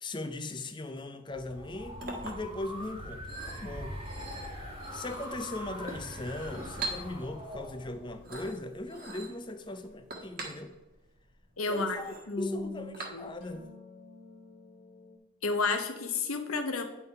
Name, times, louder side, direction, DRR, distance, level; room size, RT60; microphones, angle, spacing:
voice 1, 0.0-3.3 3.6-4.0 4.9-10.7 11.6-13.7, left 2 dB, 20° left, 8 dB, 0.5 m, -39 dB
sound 1, 1.3-8.5, equal, 25° right, 2.0 m, -42 dB
Chink clink, 1.6-13.6, right 2 dB, 40° right, 1.4 m, -44 dB
voice 2, 11.6-12.0 12.3-13.3 15.4-16.8, left 3 dB, 85° left, 7 dB, 1.0 m, -31 dB
sound 2, 13.4-15.2, left 3 dB, 45° left, 1.7 m, -52 dB
9.6 x 3.8 x 5.4 m, 1.1 s
head